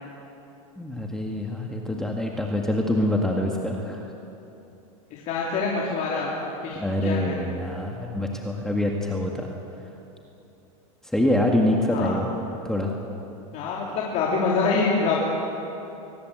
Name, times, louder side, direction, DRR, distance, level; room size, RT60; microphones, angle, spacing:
voice 1, 0.8-4.0 6.8-9.5 11.0-12.3 12.6-12.9, left 1 dB, 5° left, 0 dB, 1.9 m, -25 dB
voice 2, 5.1-6.3 6.6-7.4 11.9-12.2 13.5-15.2, left 4 dB, 45° left, -5 dB, 3.9 m, -25 dB
23.0 x 20.0 x 8.0 m, 2.9 s
supercardioid pair, 130°, 18 cm